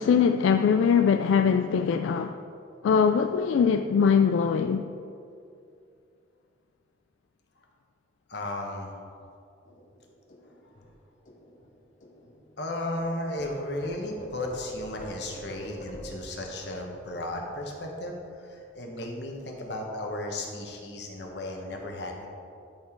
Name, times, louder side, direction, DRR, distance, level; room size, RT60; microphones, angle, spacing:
voice 1, 0.0-2.4 2.8-4.9, left 6 dB, 85° left, 0.3 m, -22 dB
voice 2, 8.3-8.9 12.6-22.3, left 1 dB, 60° left, 1.2 m, -35 dB
sound 1, 9.7-13.1 13.3-18.3 18.6-18.8 19.1-19.7, equal, 40° left, 0.8 m, -47 dB
12.0 x 4.3 x 4.5 m
head